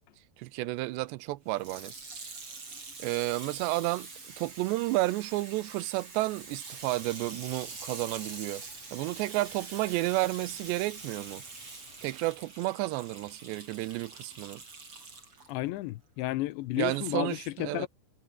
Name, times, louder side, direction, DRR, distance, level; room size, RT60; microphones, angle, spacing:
voice 1, 0.4-1.9 3.0-4.1 4.4-8.6 8.9-11.4 12.0-14.6 16.8-17.9, right 19 dB, 85° right, 2.9 m, -31 dB
Water tap faucet / Sink (filling or washing), 1.5-15.5 16.2-16.3, right 4 dB, 30° right, 5.8 m, -45 dB
sound 1, 6.8-12.1, left 4 dB, 35° left, 5.6 m, -58 dB
voice 2, 15.5-17.9, left 17 dB, 85° left, 3.2 m, -32 dB
omnidirectional pair, 5.1 m